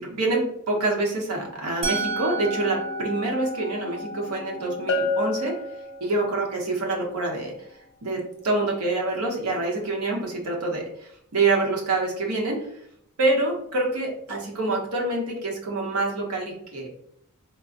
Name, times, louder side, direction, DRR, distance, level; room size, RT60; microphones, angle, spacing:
voice 1, 0.0-5.5 6.0-7.5 8.0-12.7 13.2-16.9, right 2 dB, 80° right, -1 dB, 0.8 m, -26 dB
Musical instrument, 1.8-7.7, right 2 dB, 25° right, 0.6 m, -34 dB
Bell, 4.9-6.5, left 2 dB, 55° left, 0.3 m, -28 dB
3.6 x 2.0 x 2.4 m, 0.71 s
head